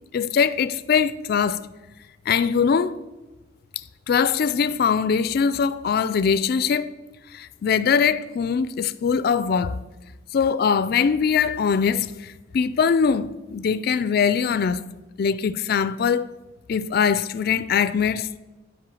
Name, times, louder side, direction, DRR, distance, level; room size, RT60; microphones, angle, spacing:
voice 1, 0.1-1.6 2.3-3.0 4.1-6.9 7.3-9.8 10.3-14.8 15.2-16.3 16.7-18.4, left 6 dB, 50° left, 0.3 m, -22 dB
8.5 x 5.4 x 7.6 m
head